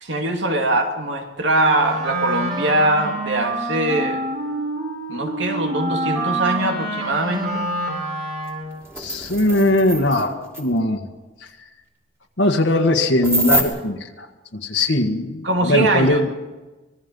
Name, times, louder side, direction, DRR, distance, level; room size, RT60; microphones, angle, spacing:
voice 1, 0.0-4.2 5.1-7.7 15.4-16.2, right 2 dB, 75° right, 3 dB, 2.7 m, -22 dB
Wind instrument woodwind instrument, 1.5-8.8, right 1 dB, 60° right, 6.7 m, -27 dB
sound 1, 8.5-8.6 8.8-10.3 10.5-10.6 13.2-13.6, right 1 dB, 15° right, 3.3 m, -24 dB
voice 2, 9.0-11.1 11.4-11.5 12.4-16.3, left 1 dB, 75° left, 2 dB, 1.6 m, -20 dB
25.5 x 20.5 x 5.4 m, 1.2 s
head